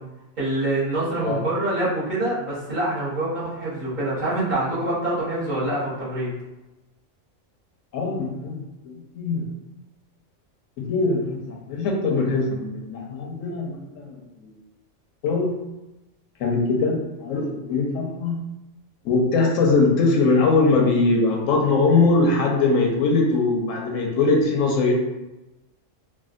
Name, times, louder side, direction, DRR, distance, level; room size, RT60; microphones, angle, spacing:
voice 1, 0.4-6.3, right 1 dB, 40° right, -9 dB, 1.1 m, -25 dB
voice 2, 7.9-8.5 8.8-9.4 10.8-14.5 15.2-15.5 16.4-18.3 19.0-24.9, left 3 dB, 80° left, 0 dB, 1.0 m, -21 dB
3.5 x 2.3 x 2.4 m, 1.0 s
omnidirectional pair, 1.3 m